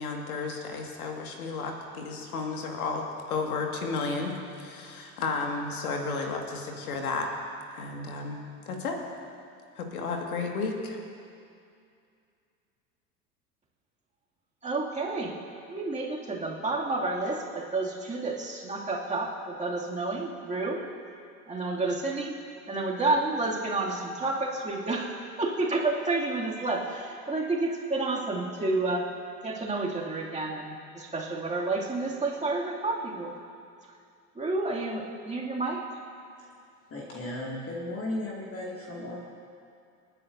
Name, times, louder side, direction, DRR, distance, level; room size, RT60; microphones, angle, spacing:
voice 1, 0.0-7.3 7.7-9.0 9.8-11.0, left 4 dB, 75° left, 2 dB, 2.1 m, -33 dB
voice 2, 14.6-15.3 15.7-20.8 21.5-22.3 22.7-29.1 29.4-33.3 34.4-35.8, right 2 dB, 15° right, -3 dB, 2.6 m, -30 dB
voice 3, 36.9-39.2, left 1 dB, 30° left, -4 dB, 2.4 m, -35 dB
28.5 x 9.8 x 2.7 m, 2.4 s
figure-of-eight pair, 75°, 44 cm